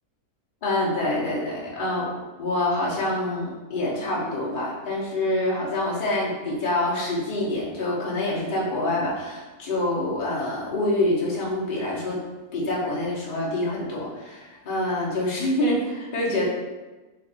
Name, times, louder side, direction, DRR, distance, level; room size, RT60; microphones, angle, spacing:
voice 1, 0.6-2.1 2.4-12.2 12.5-16.4, left 1 dB, 40° left, -5 dB, 0.8 m, -26 dB
3.2 x 2.6 x 3.9 m, 1.2 s
omnidirectional pair, 1.7 m